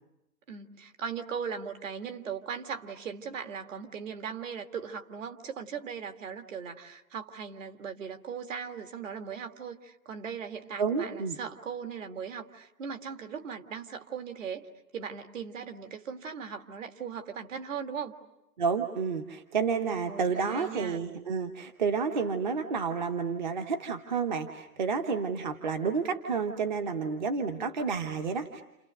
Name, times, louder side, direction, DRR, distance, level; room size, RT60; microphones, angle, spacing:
voice 1, 0.5-18.1 20.1-21.0, right 6 dB, 50° right, 6 dB, 2.0 m, -39 dB
voice 2, 10.8-11.4 18.6-28.6, right 5 dB, 30° right, 7 dB, 0.9 m, -30 dB
30.0 x 29.0 x 6.6 m, 0.90 s
hypercardioid pair, 160°, 48 cm